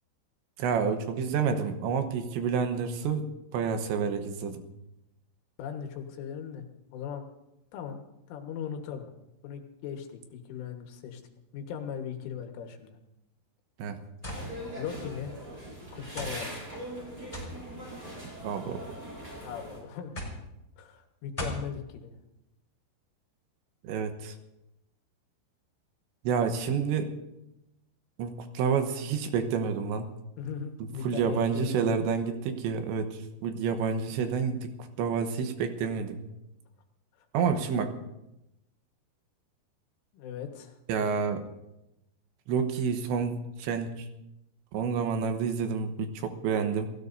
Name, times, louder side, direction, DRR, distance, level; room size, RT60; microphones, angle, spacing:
voice 1, 0.6-4.6 13.8-14.0 18.4-18.9 23.8-24.3 26.2-27.1 28.2-30.1 30.8-36.2 37.3-37.9 40.9-41.4 42.5-44.1 44.7-46.9, right 6 dB, 75° right, 7 dB, 3.2 m, -29 dB
voice 2, 5.6-6.7 6.9-7.3 7.7-8.0 8.3-9.1 9.4-11.2 11.5-13.0 14.8-15.3 15.9-16.8 19.4-20.2 20.8-22.1 30.4-32.2 40.1-40.8, left 7 dB, 85° left, 5 dB, 3.9 m, -38 dB
sound 1, 14.2-14.5 15.4-15.5 16.2-16.4 17.3-17.6 18.6-19.0 20.1-20.4 21.4-21.7, equal, 10° left, 4.3 m, -36 dB
sound 2, 14.2-19.8, right 1 dB, 20° right, 6.6 m, -41 dB
28.5 x 16.5 x 2.7 m, 0.90 s
omnidirectional pair, 5.5 m